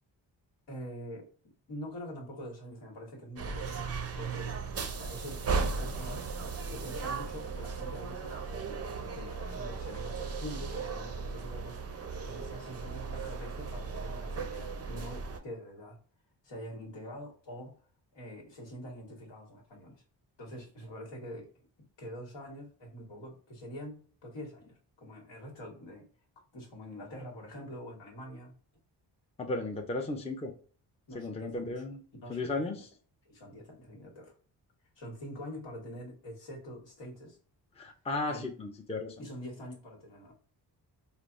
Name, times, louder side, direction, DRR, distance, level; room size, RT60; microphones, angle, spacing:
voice 1, 0.7-1.3 1.7-4.6 4.9-6.2 6.7-16.0 16.4-17.8 18.1-20.0 20.4-26.1 26.5-28.5 31.1-31.8 32.2-32.8 33.2-34.4 35.0-37.4 38.3-38.5 39.2-40.3, equal, 70° left, 0 dB, 1.2 m, -45 dB
sound 1, 3.4-15.4, right 4 dB, 35° right, 0.5 m, -36 dB
voice 2, 29.4-30.5 31.1-32.0 32.3-32.9 37.8-39.2, left 2 dB, 15° left, 2 dB, 0.5 m, -35 dB
3.3 x 2.0 x 2.4 m, 0.41 s
cardioid pair, 65°, 44 cm